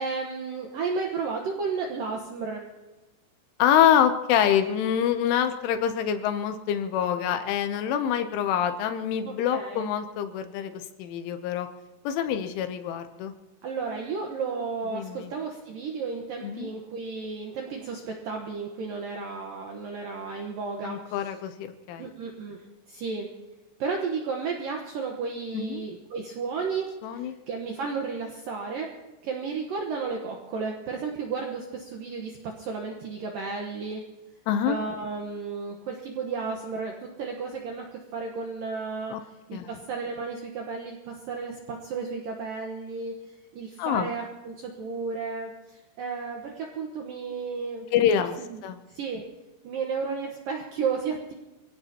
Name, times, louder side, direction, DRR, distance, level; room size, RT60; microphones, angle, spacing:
voice 1, 0.0-2.7 9.2-9.9 13.6-21.3 22.0-23.3 23.8-26.9 27.1-28.9 29.2-34.0 34.7-39.2 39.5-47.9 48.4-48.6 48.9-49.2 49.6-51.3, right 5 dB, 85° right, 1 dB, 1.9 m, -33 dB
voice 2, 3.6-10.7 11.0-11.7 12.0-13.3 14.9-15.3 16.4-16.7 20.8-22.1 25.5-25.8 27.0-27.3 34.5-34.8 39.1-39.2 39.5-39.7 43.8-44.1 47.9-48.4 48.6-48.8, left 9 dB, 80° left, 8 dB, 3.1 m, -25 dB
27.0 x 17.0 x 2.9 m, 1.1 s
omnidirectional pair, 6.0 m